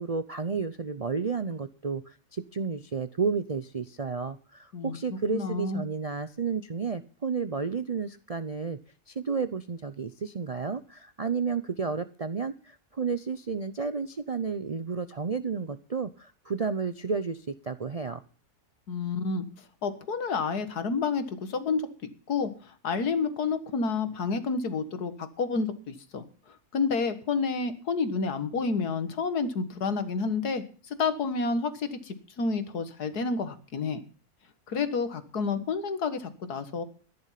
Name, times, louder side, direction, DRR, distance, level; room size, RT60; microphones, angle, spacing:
voice 1, 0.0-8.8 9.1-18.2, right 5 dB, 55° right, 12 dB, 0.4 m, -32 dB
voice 2, 4.7-5.8 18.9-19.5 19.8-21.8 22.3-26.2 26.7-34.0 34.7-36.8, left 4 dB, 85° left, 11 dB, 2.1 m, -29 dB
13.5 x 10.5 x 5.8 m, 0.39 s
omnidirectional pair, 1.6 m